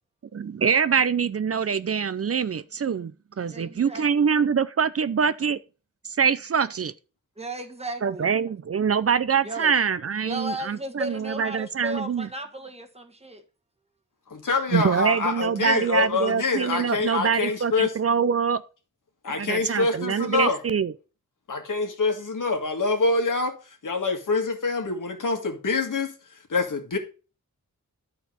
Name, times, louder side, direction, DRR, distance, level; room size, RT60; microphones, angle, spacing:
voice 1, 0.3-3.1 3.4-5.6 6.0-6.9 8.0-12.3 14.7-18.6 19.3-20.9, right 6 dB, 50° right, 0.5 m, -24 dB
voice 2, 3.5-4.3 7.4-8.3 9.4-9.7 10.2-13.4, right 1 dB, 20° right, 1.4 m, -35 dB
voice 3, 14.3-17.9 19.2-20.6 21.5-23.6 23.8-26.1 26.5-27.0, left 3 dB, 75° left, 2.0 m, -25 dB
11.5 x 4.4 x 5.3 m
wide cardioid pair, 95°, 31 cm